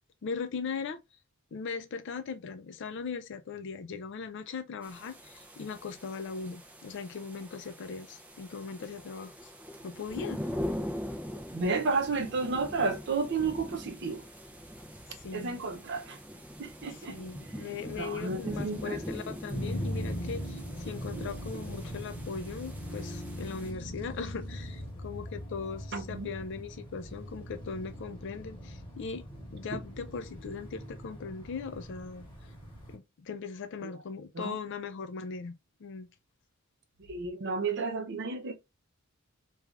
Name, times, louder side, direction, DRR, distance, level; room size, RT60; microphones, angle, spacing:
voice 1, 0.2-1.0 1.5-9.5 9.8-10.4 15.2-15.6 17.1-29.3 29.5-32.3 32.9-36.1, left 5 dB, 55° left, 0.4 m, -39 dB
sound 1, 4.8-23.7, equal, 5° right, 0.4 m, -42 dB
voice 2, 11.5-14.2 15.3-16.2 16.6-17.2 18.0-19.0 21.1-21.3 21.5-21.6 25.9-26.3 29.7-29.8 33.8-33.9 34.3-34.6 37.1-38.5, right 4 dB, 55° right, 0.6 m, -32 dB
sound 2, 19.5-33.0, equal, 25° left, 1.1 m, -40 dB
3.2 x 2.4 x 2.4 m
head